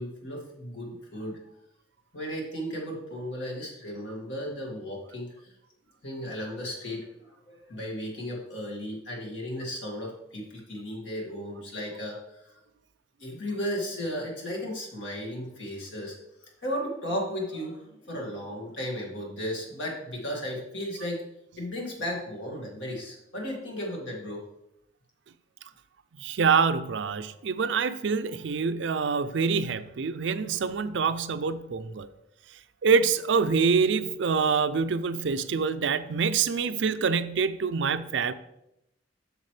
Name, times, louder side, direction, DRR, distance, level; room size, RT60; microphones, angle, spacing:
voice 1, 0.0-1.4 2.1-5.3 6.0-12.2 13.2-16.2 16.6-21.2 21.6-24.4, equal, 75° left, -1 dB, 2.2 m, -35 dB
voice 2, 26.2-32.1 32.8-38.3, right 5 dB, 70° right, 12 dB, 0.4 m, -26 dB
8.2 x 6.6 x 3.3 m, 0.84 s
head